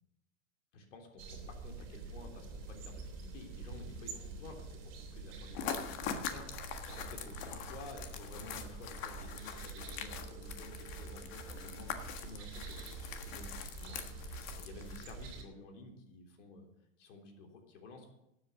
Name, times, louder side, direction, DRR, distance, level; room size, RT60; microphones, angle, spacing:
voice 1, 0.7-13.5 13.8-16.7 17.0-18.1, left 2 dB, 80° left, 3 dB, 3.6 m, -52 dB
sound 1, 1.2-15.4, right 3 dB, 35° right, 2.9 m, -47 dB
sound 2, 5.5-15.3, left 8 dB, 40° left, 1.5 m, -43 dB
13.0 x 8.2 x 7.0 m, 0.85 s
supercardioid pair, 150°, 36 cm